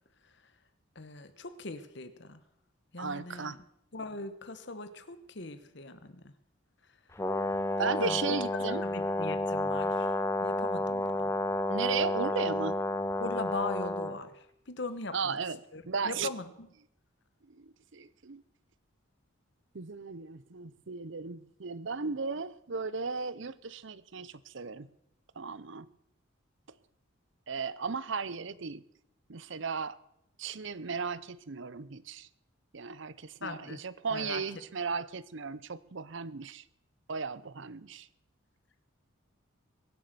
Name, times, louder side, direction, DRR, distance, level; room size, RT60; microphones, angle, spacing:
voice 1, 0.9-2.4 2.9-3.6 3.9-6.3 7.8-10.1 10.4-11.3 13.2-15.4 15.7-16.7 33.4-33.8 34.1-34.4, left 3 dB, 55° left, 11 dB, 1.2 m, -40 dB
voice 2, 3.0-3.6 7.8-8.8 11.7-12.8 15.1-15.6 15.9-16.3 17.5-18.4 19.7-24.9 25.4-25.9 27.5-28.8 29.3-30.0 30.4-32.3 32.7-36.6 37.1-38.1, right 5 dB, 65° right, 17 dB, 0.7 m, -35 dB
Brass instrument, 7.2-14.2, left 1 dB, 15° left, 0.7 m, -31 dB
22.5 x 7.6 x 6.8 m, 0.79 s
head